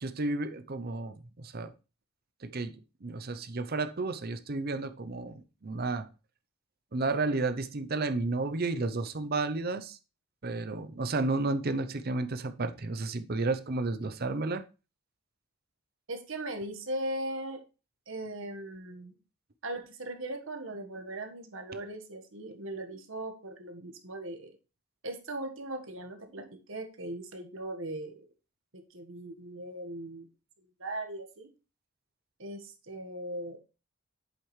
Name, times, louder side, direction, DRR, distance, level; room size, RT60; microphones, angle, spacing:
voice 1, 0.0-1.7 2.4-6.1 6.9-10.0 10.4-14.6, right 3 dB, 45° right, 0.6 m, -32 dB
voice 2, 16.1-17.6 18.1-19.1 19.6-24.5 25.0-28.2 28.7-30.3 30.6-31.5 32.4-33.6, right 1 dB, 60° right, 1.4 m, -39 dB
8.1 x 7.4 x 3.2 m
head